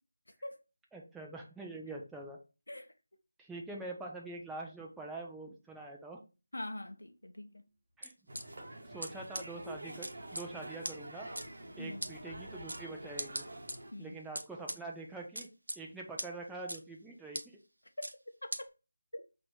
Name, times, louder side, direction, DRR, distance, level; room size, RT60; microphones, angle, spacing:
voice 1, 0.9-2.4 3.4-6.2 8.0-8.1 8.9-11.3 11.8-13.4 14.0-15.5 15.8-17.6, right 2 dB, 5° right, 0.5 m, -44 dB
voice 2, 6.5-7.7 11.8-12.1 13.9-14.2 18.4-18.5 19.1-19.2, left 1 dB, 75° left, 0.6 m, -43 dB
sound 1, 7.0-8.0 8.3-9.2 9.5-11.1, right 5 dB, 30° right, 1.2 m, -63 dB
sound 2, 8.0-8.4 9.0-9.1 9.3-9.4 10.0-10.4 10.8-10.9 11.4-11.5 12.0-12.1 12.7-12.8 13.2-13.8 14.4-14.8 15.4-15.8 16.2-16.3 16.7-16.8 17.3-17.4 18.0-18.1 18.5-18.6, right 1 dB, 80° right, 0.7 m, -38 dB
sound 3, 8.3-13.9, right 1 dB, 55° right, 1.0 m, -47 dB
5.8 x 2.6 x 3.0 m
figure-of-eight pair, 165°, 0 cm